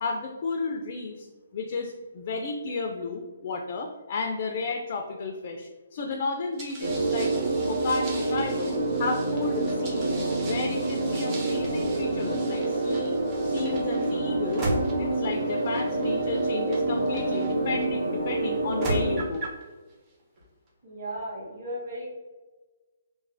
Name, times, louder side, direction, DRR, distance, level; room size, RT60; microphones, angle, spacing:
voice 1, 0.0-1.3 1.5-7.3 7.7-13.1 13.4-14.7 15.0-19.5, left 4 dB, 45° left, 2 dB, 0.3 m, -33 dB
sound 1, 6.6-17.9 18.5-19.6, right 1 dB, 25° right, 0.5 m, -38 dB
sound 2, 6.8-19.2, right 2 dB, 90° right, 0.5 m, -27 dB
voice 2, 20.8-22.1, right 1 dB, 45° right, -12 dB, 1.2 m, -35 dB
3.1 x 2.0 x 2.5 m, 1.2 s
hypercardioid pair, 155°, 0 cm